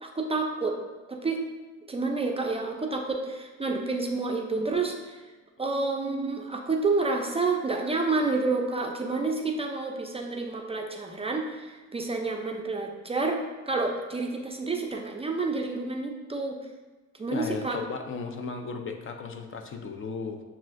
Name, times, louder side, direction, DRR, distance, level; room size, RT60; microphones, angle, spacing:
voice 1, 0.0-0.8 1.1-1.4 1.9-5.2 5.6-13.4 13.7-16.6 17.2-17.8, right 3 dB, 20° right, 1 dB, 0.4 m, -29 dB
voice 2, 17.3-20.4, left 4 dB, 45° left, 5 dB, 0.5 m, -35 dB
7.1 x 2.4 x 2.4 m, 1.2 s
cardioid pair, 90°, 30 cm